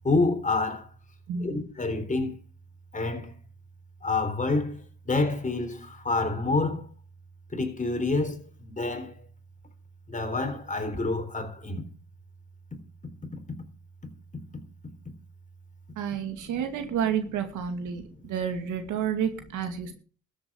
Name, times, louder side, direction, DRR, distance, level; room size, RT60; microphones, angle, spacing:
voice 1, 0.0-0.9 1.4-2.4 2.9-3.4 4.0-6.9 7.5-9.2 10.1-11.8 13.3-13.4 16.1-17.1 17.7-18.3 19.0-19.1 19.8-19.9, left 3 dB, 25° left, 3.6 m, -29 dB
voice 2, 1.3-1.6 16.0-19.9, right 8 dB, 85° right, 2.5 m, -30 dB
13.5 x 7.9 x 7.1 m
cardioid pair, 90°, 30 cm